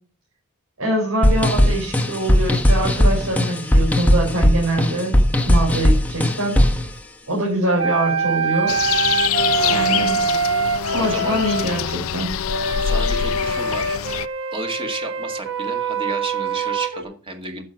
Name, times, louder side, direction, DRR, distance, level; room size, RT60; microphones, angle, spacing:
voice 1, 0.8-5.2 5.5-6.6 7.3-8.7 9.7-10.2 10.9-12.3, right 1 dB, 80° right, -4 dB, 4.8 m, -23 dB
sound 1, 1.2-6.9, equal, 5° left, 1.2 m, -17 dB
sound 2, 7.7-11.7 12.5-17.0, right 4 dB, 60° right, 1.4 m, -24 dB
sound 3, 8.7-14.3, left 9 dB, 70° left, 0.5 m, -25 dB
voice 2, 11.0-11.6 12.8-17.6, right 1 dB, 25° right, 4 dB, 1.9 m, -32 dB
10.5 x 7.4 x 5.8 m, 0.41 s
head